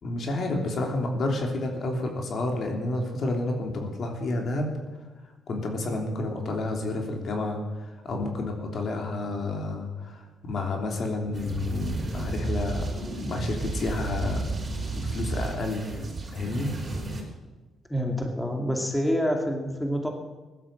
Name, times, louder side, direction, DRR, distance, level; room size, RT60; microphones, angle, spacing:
voice 1, 0.0-4.7 5.5-12.8 13.3-14.4 14.9-16.7, left 2 dB, 55° left, 2 dB, 3.3 m, -30 dB
sound 1, 11.3-17.2, right 3 dB, 30° right, 6.1 m, -32 dB
voice 2, 17.9-20.1, equal, 5° left, 2 dB, 2.4 m, -27 dB
16.0 x 11.5 x 7.7 m, 1.2 s
cardioid pair, 90°, 0 cm